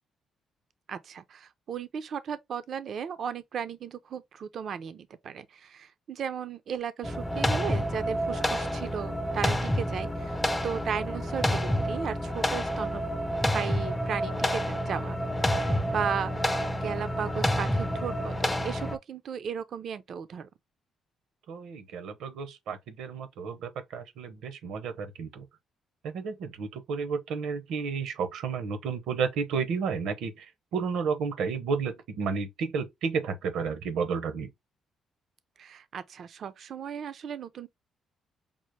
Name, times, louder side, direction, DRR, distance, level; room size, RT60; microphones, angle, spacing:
voice 1, 0.9-10.4 10.6-13.0 13.5-15.2 15.6-16.3 16.7-20.5 35.6-37.7, right 7 dB, 60° right, 0.5 m, -35 dB
sound 1, 7.0-19.0, equal, 10° left, 0.5 m, -29 dB
voice 2, 21.5-25.5 26.0-34.5, right 5 dB, 80° right, 0.9 m, -32 dB
5.3 x 2.1 x 3.1 m
cardioid pair, 90°, 0 cm